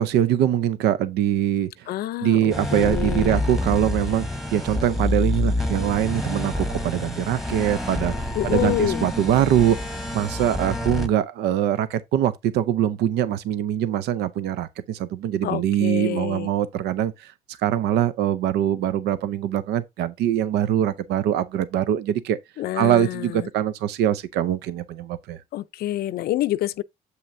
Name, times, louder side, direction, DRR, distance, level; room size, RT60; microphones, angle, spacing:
voice 1, 0.0-1.9 2.2-4.3 4.5-8.1 8.4-22.4 22.7-25.4, right 11 dB, 75° right, 0.6 m, -23 dB
voice 2, 1.9-3.4 8.4-9.1 15.4-16.5 22.6-23.5 25.5-26.8, left 14 dB, 65° left, 0.5 m, -27 dB
sound 1, 2.5-11.1, left 1 dB, ahead, 1.2 m, -27 dB
7.8 x 5.7 x 2.6 m
cardioid pair, 110°, 17 cm